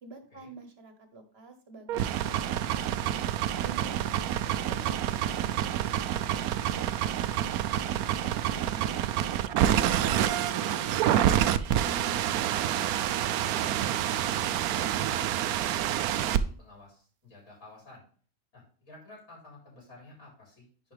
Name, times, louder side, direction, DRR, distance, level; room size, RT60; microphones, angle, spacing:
voice 1, 0.0-3.2 3.6-6.9 7.4-12.2, right 2 dB, 45° right, 7 dB, 1.4 m, -49 dB
sound 1, 1.9-16.4, right 11 dB, 90° right, 1.1 m, -28 dB
voice 2, 13.5-18.0 18.5-20.7, left 2 dB, 65° left, -3 dB, 4.3 m, -51 dB
10.5 x 4.9 x 3.3 m, 0.44 s
omnidirectional pair, 1.5 m